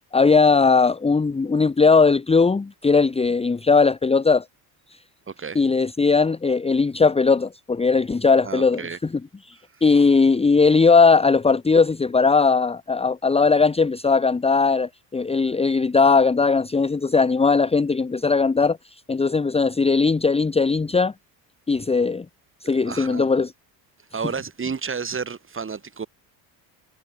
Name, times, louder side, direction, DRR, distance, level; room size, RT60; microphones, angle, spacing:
voice 1, 0.1-4.4 5.5-9.1 9.5-9.6 9.8-18.8 19.1-21.1 21.7-22.2 22.6-23.5, left 4 dB, 15° left, 1.1 m, -19 dB
voice 2, 5.3-5.6 8.4-9.0 22.6-23.3 24.1-26.1, right 5 dB, 25° right, 7.0 m, -31 dB
cardioid pair, 110°, 47 cm